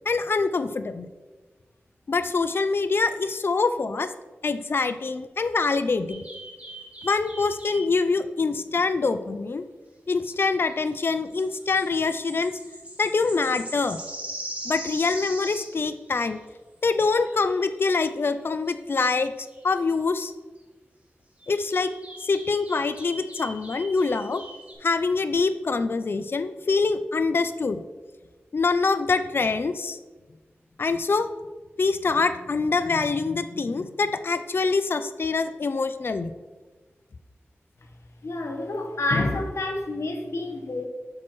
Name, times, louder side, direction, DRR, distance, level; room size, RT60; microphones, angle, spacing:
voice 1, 0.1-1.1 2.1-4.1 4.4-6.2 7.0-9.6 10.1-12.6 13.0-14.0 14.6-16.4 16.8-19.3 19.6-20.3 21.5-21.9 22.2-24.4 24.8-27.8 28.5-30.0 30.8-31.3 31.8-36.3, left 4 dB, 50° left, 11 dB, 0.4 m, -25 dB
sound 1, 6.1-8.0 10.3-10.4 10.7-10.8 11.0-16.4 17.0-17.6 18.0-18.3 18.7-18.8 19.0-19.9 20.2-20.3 21.4-24.7, right 1 dB, 30° right, 1.8 m, -41 dB
voice 2, 38.2-40.9, left 2 dB, 75° left, 3 dB, 1.0 m, -28 dB
8.6 x 6.0 x 3.1 m, 1.3 s
wide cardioid pair, 75°, 5 cm